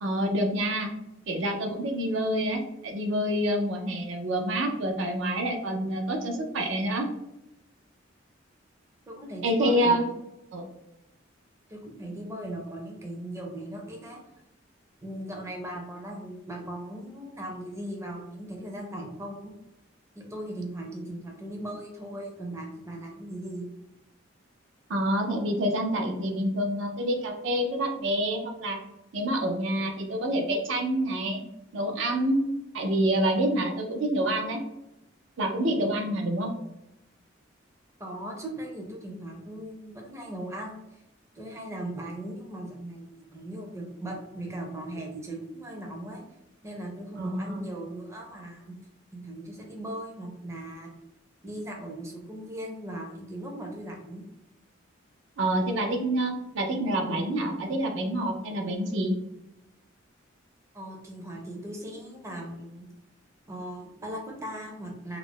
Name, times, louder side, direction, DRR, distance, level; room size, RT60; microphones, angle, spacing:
voice 1, 0.0-0.9 1.3-7.1 9.4-10.0 10.5-10.7 24.9-28.8 29.1-31.4 31.7-32.4 32.7-34.6 35.4-36.5 47.2-47.6 55.4-59.2, right 1 dB, 75° right, 3 dB, 0.5 m, -27 dB
voice 2, 9.1-10.0 11.7-14.2 15.0-19.5 20.2-23.7 38.0-41.0 41.3-46.2 46.6-48.8 49.1-50.9 51.4-54.2 60.7-62.9 63.5-65.2, right 1 dB, 15° right, 0 dB, 0.5 m, -38 dB
2.4 x 2.0 x 3.5 m, 0.89 s
head